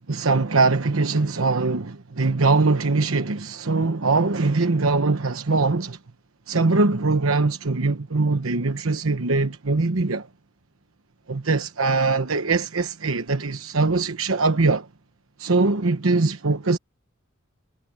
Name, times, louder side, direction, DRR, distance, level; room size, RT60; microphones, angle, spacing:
voice 1, 0.1-6.0 6.5-10.3 11.3-14.9 15.4-16.8, right 3 dB, 90° right, 1.1 m, -22 dB
head